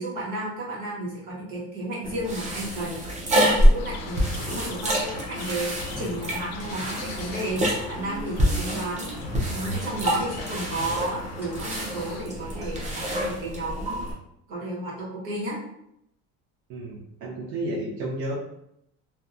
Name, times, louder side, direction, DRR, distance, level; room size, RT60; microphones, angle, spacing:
voice 1, 0.0-9.1 9.5-14.0 14.5-15.5, right 1 dB, 85° right, -4 dB, 1.2 m, -33 dB
sound 1, 2.0-14.1, equal, 20° right, 0.5 m, -27 dB
sound 2, 3.8-12.3, left 4 dB, 50° left, 0.4 m, -42 dB
Car, 4.2-13.2, left 1 dB, 5° right, 0.9 m, -42 dB
voice 2, 16.7-18.3, right 1 dB, 65° right, -6 dB, 0.7 m, -32 dB
2.7 x 2.2 x 2.4 m, 0.78 s
cardioid pair, 145°, 33 cm